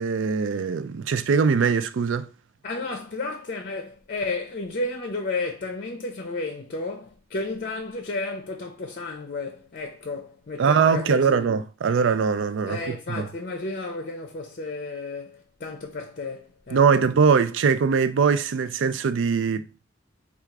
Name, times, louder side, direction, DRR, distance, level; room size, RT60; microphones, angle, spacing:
voice 1, 0.0-2.3 10.6-12.8 13.1-13.3 16.7-19.7, right 5 dB, 70° right, 0.4 m, -21 dB
voice 2, 2.6-11.5 12.7-17.1, left 3 dB, 45° left, 0.6 m, -32 dB
3.7 x 2.4 x 4.5 m
head